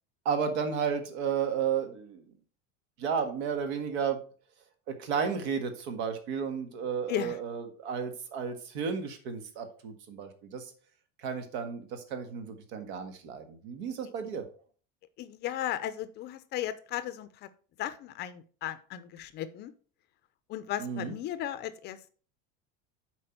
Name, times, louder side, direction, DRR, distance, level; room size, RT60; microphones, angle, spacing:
voice 1, 0.2-2.2 3.0-4.2 4.9-10.7 11.2-14.5 20.8-21.1, right 6 dB, 85° right, 7 dB, 1.7 m, -33 dB
voice 2, 15.2-17.3 17.8-19.7 20.5-22.1, left 12 dB, 35° left, 13 dB, 0.5 m, -35 dB
7.8 x 4.7 x 4.5 m, 0.41 s
cardioid pair, 165°, 32 cm